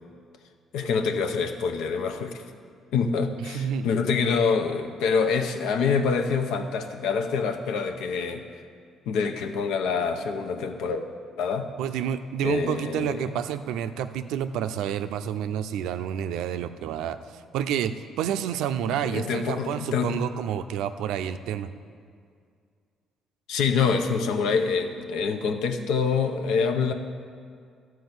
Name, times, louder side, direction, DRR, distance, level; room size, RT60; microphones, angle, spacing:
voice 1, 0.7-2.4 2.9-8.4 9.1-11.0 11.4-11.7 12.4-13.2 19.0-20.2 23.5-26.9, left 5 dB, 85° left, 7 dB, 0.7 m, -26 dB
voice 2, 3.4-3.9 11.8-21.7, right 9 dB, 85° right, 10 dB, 0.4 m, -29 dB
12.5 x 4.6 x 8.0 m, 2.2 s
cardioid pair, 105°, 0 cm